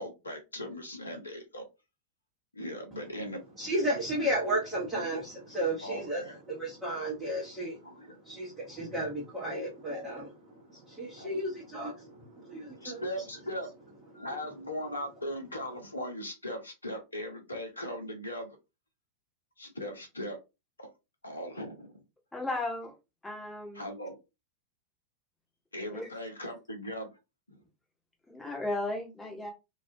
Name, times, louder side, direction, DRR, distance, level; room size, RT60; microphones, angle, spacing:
voice 1, 0.0-1.6 2.5-3.4 5.8-6.3 7.8-8.2 11.2-11.4 12.8-13.7 14.1-18.6 19.6-20.4 20.8-20.9 21.2-22.0 23.7-24.2 25.7-27.1 27.5-27.6, equal, 80° left, 0.7 m, -39 dB
voice 2, 3.6-13.0 14.1-14.5, right 1 dB, 10° right, 0.9 m, -34 dB
voice 3, 22.3-22.9 23.2-23.9 25.9-26.1 28.3-29.5, left 2 dB, 10° left, 1.1 m, -35 dB
2.3 x 2.3 x 2.7 m
figure-of-eight pair, 90°, 0 cm